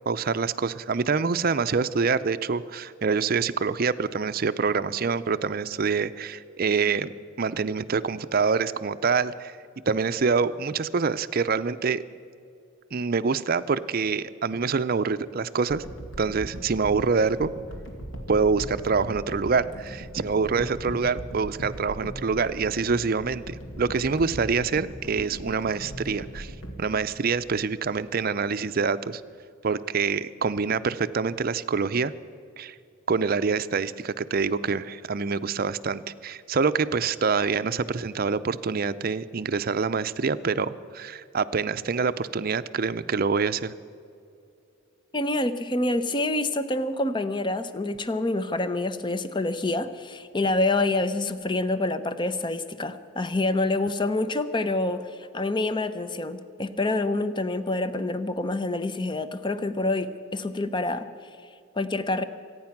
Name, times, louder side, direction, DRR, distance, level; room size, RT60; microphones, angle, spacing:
voice 1, 0.1-9.6 9.9-12.0 12.9-15.8 16.2-17.5 18.3-26.5 26.8-29.2 29.6-32.1 32.6-32.7 33.1-43.7, right 5 dB, 45° right, 13 dB, 0.5 m, -26 dB
sound 1, 15.7-27.9 28.4-28.5, equal, 75° left, 2.3 m, -39 dB
voice 2, 45.1-61.1 61.8-62.2, left 2 dB, 25° left, 12 dB, 0.7 m, -27 dB
25.5 x 9.5 x 5.9 m, 2.5 s
head